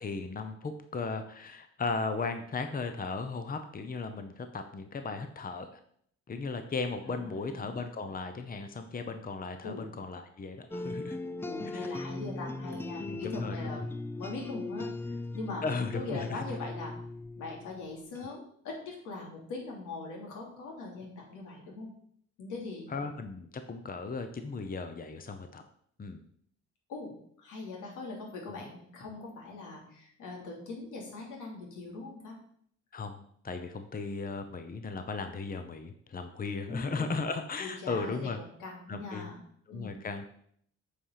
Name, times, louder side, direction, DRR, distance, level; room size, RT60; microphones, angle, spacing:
voice 1, 0.0-5.7 6.3-11.2 11.7-11.9 13.1-13.8 15.6-16.4 22.9-25.6 26.0-26.2 28.5-28.6 32.9-38.4 38.9-39.3 39.7-40.3, left 4 dB, 30° left, 7 dB, 0.9 m, -36 dB
voice 2, 7.1-7.6 9.6-9.9 11.4-13.8 14.2-15.6 15.9-16.9 17.4-21.9 22.4-22.9 26.9-32.4 36.7-37.1 37.6-39.4 39.7-40.0, left 3 dB, 85° left, -1 dB, 2.9 m, -41 dB
sound 1, 10.7-18.3, left 2 dB, 10° left, 0.4 m, -39 dB
8.5 x 5.0 x 5.8 m, 0.65 s
cardioid pair, 90°, 30 cm